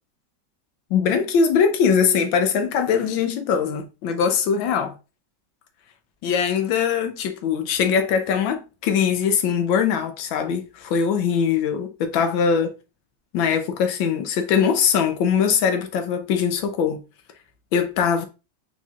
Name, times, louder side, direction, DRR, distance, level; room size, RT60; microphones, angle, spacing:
voice 1, 0.9-4.9 6.2-12.7 13.3-17.0 17.7-18.3, left 6 dB, 90° left, 1.5 m, -21 dB
4.5 x 4.1 x 2.4 m
omnidirectional pair, 2.0 m